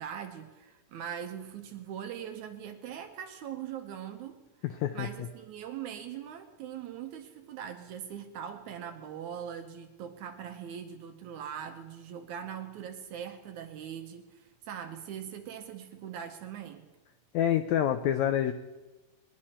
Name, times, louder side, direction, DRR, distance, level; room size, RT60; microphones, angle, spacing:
voice 1, 0.0-4.4 4.9-16.9, right 9 dB, 70° right, 6 dB, 2.1 m, -41 dB
voice 2, 4.6-5.1 17.3-18.5, left 11 dB, 85° left, 9 dB, 1.6 m, -27 dB
21.5 x 10.5 x 4.3 m, 1.1 s
omnidirectional pair, 4.0 m